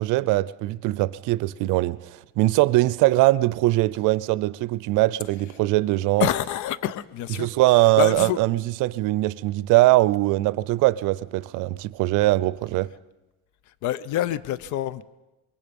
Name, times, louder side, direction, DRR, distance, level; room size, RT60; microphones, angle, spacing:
voice 1, 0.0-2.1 2.4-6.3 7.4-12.9, right 18 dB, 90° right, 0.6 m, -21 dB
voice 2, 6.2-7.5 8.0-8.6 13.7-15.0, left 12 dB, 75° left, 0.8 m, -27 dB
24.5 x 22.0 x 5.4 m
cardioid pair, 120°, 30 cm